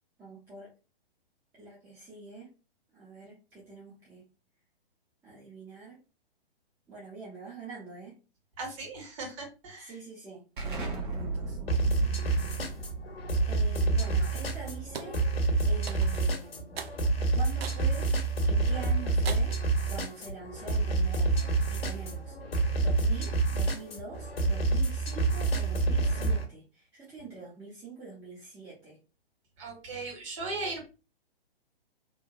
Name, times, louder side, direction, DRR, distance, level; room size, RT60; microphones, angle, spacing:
voice 1, 0.2-0.7 1.5-2.5 2.9-4.3 5.2-6.0 6.9-8.2 9.8-11.6 13.5-15.2 15.7-16.8 17.3-18.1 18.4-19.5 19.9-22.4 22.8-29.0, right 4 dB, 5° right, -8 dB, 0.5 m, -45 dB
voice 2, 8.6-9.9 29.6-30.9, right 3 dB, 30° right, 0 dB, 1.0 m, -38 dB
Explosion, 10.6-16.0, right 3 dB, 55° right, 0.9 m, -39 dB
sound 1, 11.7-26.4, right 3 dB, 75° left, 0.8 m, -28 dB
sound 2, 14.9-15.2 15.9-16.3 16.8-17.0 17.6-17.9 18.4-18.5 19.2-19.6, right 6 dB, 75° right, 0.5 m, -39 dB
2.9 x 2.1 x 2.4 m, 0.31 s
figure-of-eight pair, 125°, 30 cm